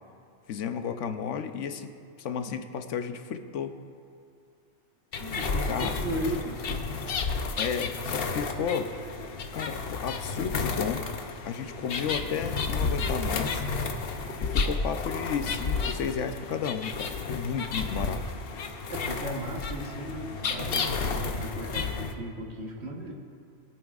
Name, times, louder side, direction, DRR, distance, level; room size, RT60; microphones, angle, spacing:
voice 1, 0.5-1.9 2.2-3.7 5.7-5.9 7.6-8.9 9.5-11.1 11.4-13.6 14.4-18.2, left 7 dB, 80° left, 8 dB, 1.0 m, -33 dB
sound 1, 5.1-22.1, left 4 dB, 55° left, 0.9 m, -31 dB
voice 2, 5.2-6.8 18.9-23.1, right 1 dB, 60° right, 0 dB, 1.5 m, -36 dB
22.0 x 8.8 x 2.4 m, 2.5 s
omnidirectional pair, 1.2 m